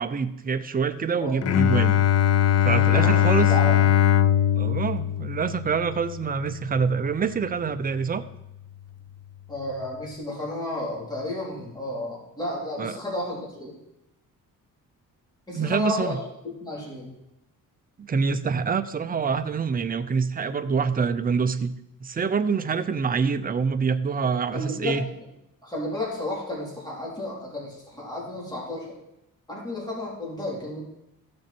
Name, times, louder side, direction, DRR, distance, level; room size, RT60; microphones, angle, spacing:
voice 1, 0.0-1.9 2.6-3.5 4.6-8.2 12.8-12.9 15.5-16.2 18.0-21.7 22.0-25.0, right 5 dB, 25° right, 10 dB, 0.6 m, -26 dB
Bowed string instrument, 1.4-7.1, left 10 dB, 50° left, 0.4 m, -21 dB
voice 2, 2.7-3.8 9.5-13.7 15.5-16.2 16.4-17.1 24.5-25.3 25.6-28.9 29.5-30.8, left 1 dB, 10° left, -5 dB, 3.5 m, -32 dB
15.0 x 6.4 x 4.4 m, 0.88 s
cardioid pair, 125°, 35 cm